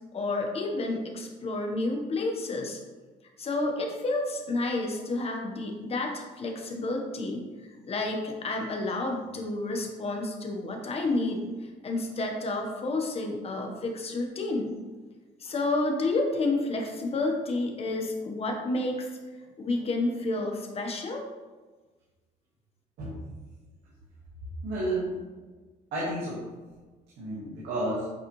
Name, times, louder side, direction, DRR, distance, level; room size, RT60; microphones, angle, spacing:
voice 1, 0.1-2.8 3.4-7.5 7.8-14.8 15.4-19.1 19.6-21.2, left 2 dB, 35° left, 2 dB, 1.3 m, -30 dB
voice 2, 24.6-25.1 25.9-26.4 27.2-28.1, right 1 dB, 80° right, -7 dB, 2.1 m, -31 dB
8.8 x 4.0 x 3.2 m, 1.3 s
cardioid pair, 110°, 17 cm